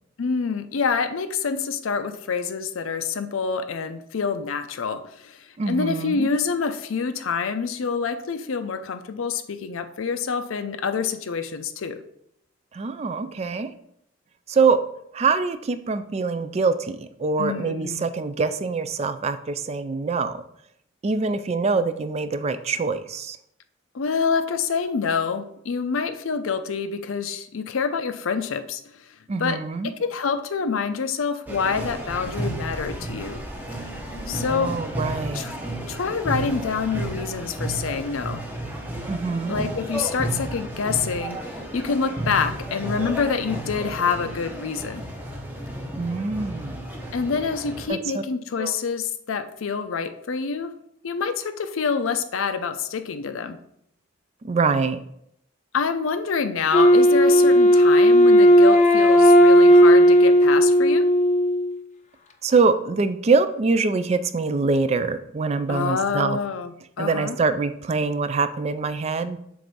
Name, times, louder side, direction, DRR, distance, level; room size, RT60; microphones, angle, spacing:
voice 1, 0.2-12.0 17.4-18.1 23.9-33.4 34.3-34.7 35.3-35.5 35.9-38.4 39.5-45.1 47.1-50.7 51.0-53.6 55.7-61.1 65.7-67.4, left 5 dB, 85° left, 10 dB, 0.5 m, -27 dB
voice 2, 5.6-6.3 12.7-13.7 14.5-14.8 15.1-20.4 21.0-23.4 29.3-29.9 34.5-35.4 39.1-39.6 46.0-46.9 47.9-48.2 48.6-48.7 54.4-55.0 62.4-66.4 67.0-69.4, right 4 dB, 30° right, 11 dB, 0.3 m, -24 dB
sound 1, 31.5-47.9, right 1 dB, 10° right, 0.8 m, -32 dB
Wind instrument woodwind instrument, 56.7-61.7, equal, 35° left, 0.5 m, -14 dB
7.4 x 2.6 x 5.3 m, 0.74 s
head